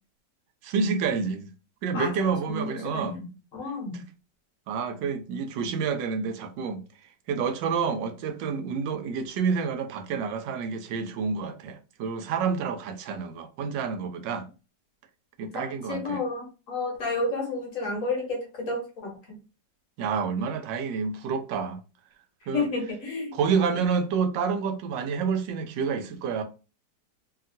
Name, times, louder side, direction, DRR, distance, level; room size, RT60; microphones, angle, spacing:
voice 1, 0.6-1.5 1.8-3.2 3.9-4.1 4.7-6.8 7.3-14.5 15.4-16.2 20.0-21.8 22.5-22.6 23.3-26.4, right 5 dB, 85° right, 1.3 m, -28 dB
voice 2, 1.9-4.0 15.5-19.4 22.5-23.9, left 3 dB, 55° left, 1.1 m, -31 dB
2.8 x 2.8 x 2.5 m
omnidirectional pair, 1.9 m